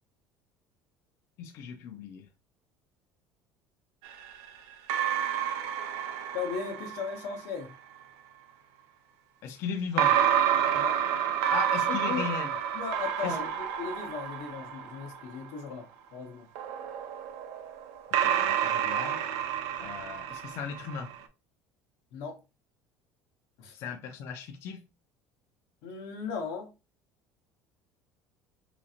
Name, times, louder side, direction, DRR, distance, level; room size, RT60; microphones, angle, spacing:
voice 1, 1.4-2.3 9.4-10.1 11.5-12.5 13.2-13.4 18.2-19.2 19.8-21.1 23.7-24.8, left 6 dB, 50° left, 0.4 m, -37 dB
sound 1, 4.0-7.5 10.0-15.4 16.5-21.2, right 9 dB, 85° right, 0.6 m, -29 dB
voice 2, 6.3-7.7 10.7-11.0 11.9-12.3 12.7-16.5 22.1-22.4 23.6-23.8 25.8-26.7, left 5 dB, 70° left, 0.8 m, -37 dB
3.9 x 2.9 x 2.4 m
cardioid pair, 165°, 6 cm